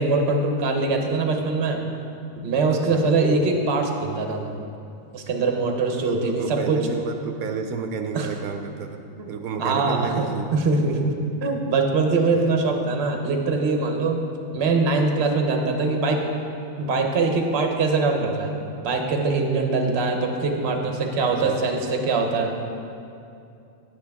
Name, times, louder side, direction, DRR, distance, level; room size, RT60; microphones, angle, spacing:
voice 1, 0.0-1.9 2.4-4.6 5.1-6.9 8.1-8.3 9.2-9.3 9.6-11.1 11.4-14.2 14.5-16.2 16.8-18.5 18.8-22.5, right 3 dB, 50° right, 3 dB, 1.1 m, -23 dB
voice 2, 6.0-9.0 9.3-10.6 12.4-12.5 21.4-21.6, right 6 dB, 85° right, 5 dB, 1.0 m, -31 dB
10.0 x 9.5 x 3.5 m, 2.6 s
omnidirectional pair, 1.5 m